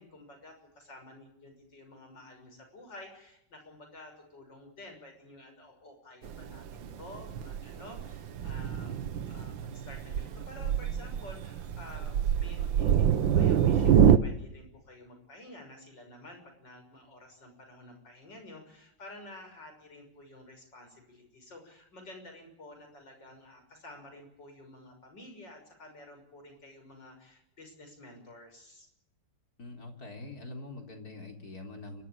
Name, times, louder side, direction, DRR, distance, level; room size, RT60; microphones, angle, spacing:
voice 1, 0.0-28.9, left 1 dB, 70° left, 4 dB, 7.1 m, -51 dB
Thunder, 6.2-14.2, right 9 dB, 85° right, 1.8 m, -26 dB
voice 2, 29.6-32.0, left 2 dB, 50° left, 3 dB, 4.4 m, -44 dB
29.5 x 13.0 x 9.0 m, 0.79 s
omnidirectional pair, 2.0 m